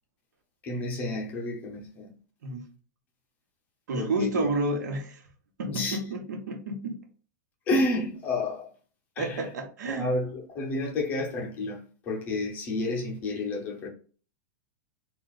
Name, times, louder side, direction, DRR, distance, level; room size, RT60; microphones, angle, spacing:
voice 1, 0.6-2.1 3.9-4.5 5.7-6.0 7.7-8.7 9.2-9.5 9.9-13.9, left 2 dB, 15° left, 0.6 m, -30 dB
voice 2, 3.9-5.2 5.6-7.0 9.2-10.1, right 2 dB, 75° right, 1.3 m, -31 dB
4.1 x 2.4 x 4.0 m
supercardioid pair, 180°, 10 cm